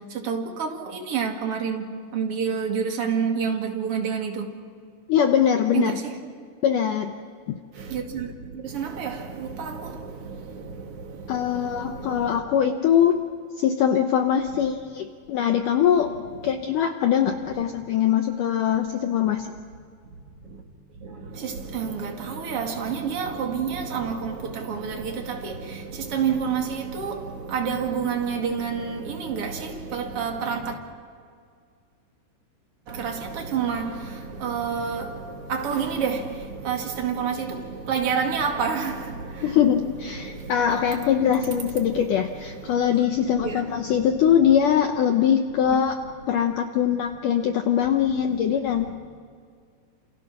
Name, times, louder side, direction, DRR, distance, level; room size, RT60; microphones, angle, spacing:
voice 1, 0.1-4.5 5.7-6.0 7.7-12.4 14.6-14.7 20.4-20.6 20.9-30.8 32.9-39.6 40.1-42.7 43.1-44.1 45.7-45.8 48.7-48.9, right 6 dB, 45° right, 2.4 m, -29 dB
voice 2, 5.1-6.0 6.6-7.1 7.5-7.6 11.3-13.2 13.6-16.2 16.4-19.5 39.4-46.0 46.3-48.9, left 9 dB, 70° left, 2.0 m, -22 dB
29.0 x 28.0 x 6.1 m
omnidirectional pair, 4.7 m